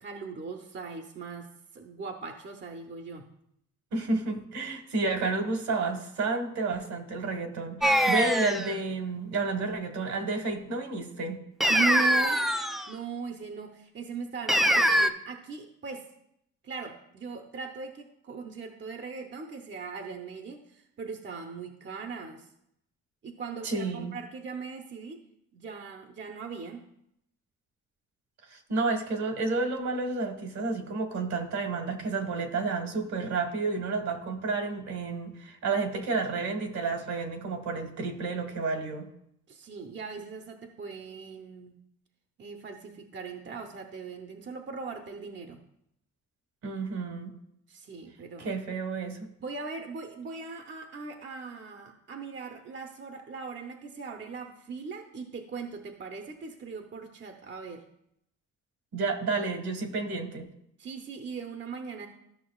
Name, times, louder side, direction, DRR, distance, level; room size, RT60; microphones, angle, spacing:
voice 1, 0.0-3.3 11.7-12.4 12.9-16.1 16.6-22.5 23.2-25.2 25.5-26.8 39.5-41.7 42.4-45.6 47.7-48.5 49.4-57.9 60.8-62.1, right 5 dB, 40° right, 4 dB, 0.8 m, -39 dB
voice 2, 3.9-11.4 23.6-24.2 28.5-39.1 46.6-47.3 48.4-49.3 58.9-60.5, right 3 dB, 65° right, 5 dB, 1.4 m, -31 dB
sound 1, 7.8-8.7 11.6-12.9 14.5-15.1, equal, ahead, 0.4 m, -23 dB
13.0 x 5.9 x 2.3 m, 0.76 s
cardioid pair, 90°, 30 cm